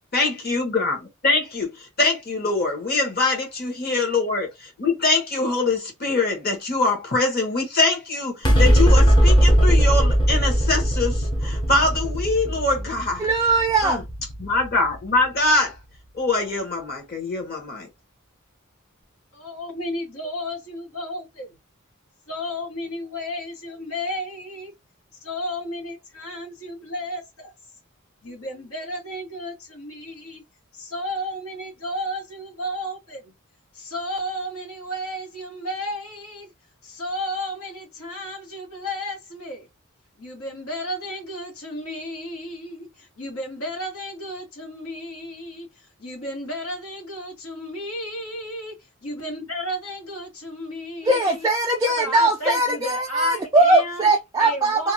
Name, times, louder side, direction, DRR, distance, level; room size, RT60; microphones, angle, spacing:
voice 1, 0.1-13.3 13.8-14.0 14.4-15.8 16.1-17.9, left 3 dB, 45° left, 1.1 m, -23 dB
sound 1, 8.4-15.1, equal, 20° left, 0.6 m, -19 dB
voice 2, 13.2-14.0 51.0-54.9, right 2 dB, 15° right, 0.3 m, -20 dB
voice 3, 19.3-21.6 22.3-24.7 25.2-27.5 28.2-30.4 30.7-33.3 33.7-36.5 36.8-39.7 40.1-48.7 49.0-51.5 51.8-54.1 54.4-54.9, left 1 dB, 90° left, 1.5 m, -33 dB
2.7 x 2.2 x 2.7 m
head